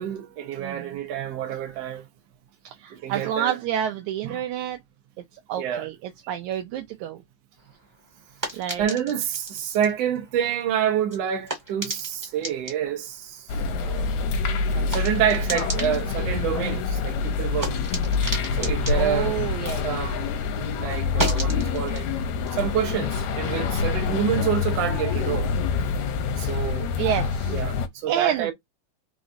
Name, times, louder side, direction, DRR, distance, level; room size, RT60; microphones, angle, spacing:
voice 1, 0.0-2.0 2.9-3.6 4.2-4.4 5.6-5.9 8.8-14.2 14.7-17.8 18.5-22.1 22.5-25.5 26.4-27.2 27.5-28.5, right 9 dB, 60° right, 1.8 m, -28 dB
voice 2, 0.6-0.9 2.6-4.8 5.5-5.9 6.3-7.2 8.5-8.9 14.7-14.9 18.9-19.8 27.0-27.6 28.1-28.5, right 10 dB, 80° right, 1.7 m, -28 dB
sound 1, 7.6-20.4 20.6-23.9, right 1 dB, 10° right, 1.3 m, -37 dB
sound 2, 13.5-27.9, left 5 dB, 75° left, 1.8 m, -26 dB
5.1 x 4.0 x 2.6 m
omnidirectional pair, 4.0 m